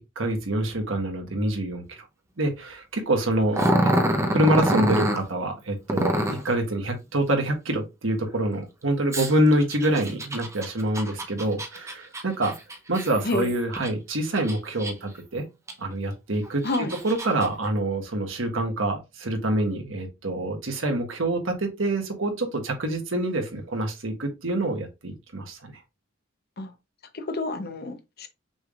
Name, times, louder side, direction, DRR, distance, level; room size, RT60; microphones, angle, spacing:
voice 1, 0.1-2.0 2.4-3.6 4.3-12.5 12.9-15.4 15.8-16.6 17.0-25.8, right 1 dB, 70° right, 1.4 m, -26 dB
Growling, 3.5-5.2 5.9-6.5 9.1-13.9 14.4-15.2 15.7-15.8 16.5-17.5, right 1 dB, 15° right, 0.7 m, -26 dB
voice 2, 27.1-28.3, left 3 dB, 50° left, 0.8 m, -29 dB
6.0 x 3.4 x 2.4 m
head